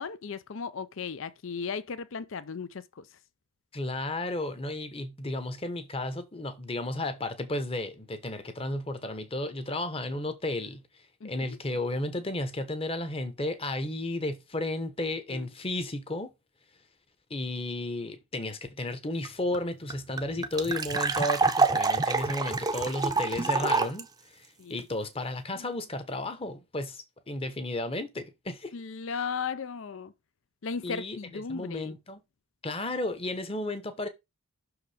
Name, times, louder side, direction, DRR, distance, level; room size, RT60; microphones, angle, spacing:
voice 1, 0.0-3.1 11.2-11.6 15.3-15.5 24.6-24.9 25.5-25.7 28.7-30.1 30.6-31.9, left 5 dB, 60° left, 0.5 m, -36 dB
voice 2, 3.7-10.8 11.2-16.3 17.3-28.7 30.8-32.2 32.6-34.1, left 1 dB, 25° left, 1.0 m, -33 dB
sound 1, 19.2-19.3 19.5-19.6 19.9-24.0, right 4 dB, 15° right, 0.6 m, -27 dB
6.2 x 4.8 x 4.9 m
head